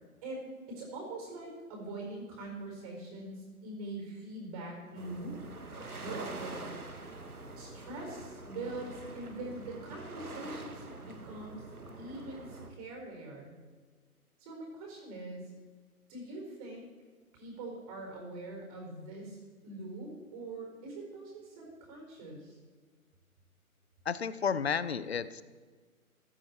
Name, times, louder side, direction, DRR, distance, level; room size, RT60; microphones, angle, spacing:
voice 1, 0.2-5.3 6.0-6.7 7.6-11.6 12.0-13.5 14.4-15.4 16.1-16.8 17.3-22.6, right 2 dB, 25° right, 0 dB, 4.8 m, -43 dB
sound 1, 4.9-12.7, right 3 dB, 80° right, 2.1 m, -45 dB
voice 2, 24.0-25.4, left 6 dB, 45° left, 16 dB, 0.8 m, -32 dB
15.0 x 13.5 x 4.5 m, 1.4 s
figure-of-eight pair, 140°, 44 cm